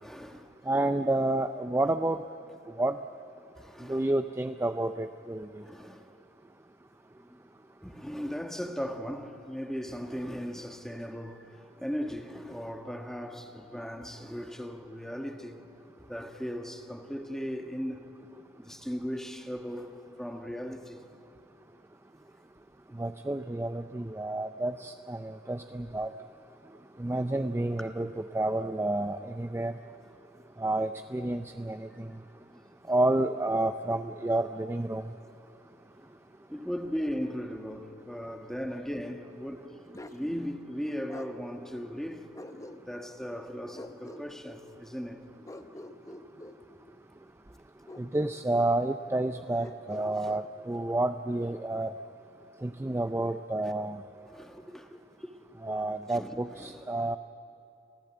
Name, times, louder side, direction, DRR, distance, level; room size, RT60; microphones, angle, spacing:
voice 1, 0.0-0.5 3.6-4.1 5.6-6.1 7.3-7.4 7.8-15.6 16.0-18.1 18.6-21.0 27.8-27.9 32.4-32.6 36.0-36.1 36.5-42.3 42.8-45.2 46.1-46.2 54.2-55.3 55.7-55.8 56.1-56.8, equal, 5° left, 1.3 m, -38 dB
voice 2, 0.7-2.2 2.8-3.0 3.8-5.6 22.9-26.1 27.0-29.8 30.6-32.2 32.9-35.1 48.0-51.9 52.6-54.0 55.6-57.2, right 2 dB, 15° right, 0.5 m, -30 dB
Bark, 39.9-40.2 41.1-41.3 42.3-43.1 43.7-44.3 45.4-46.6 47.9-48.8 49.6-50.5, left 1 dB, 20° left, 0.9 m, -45 dB
29.5 x 15.0 x 8.8 m
head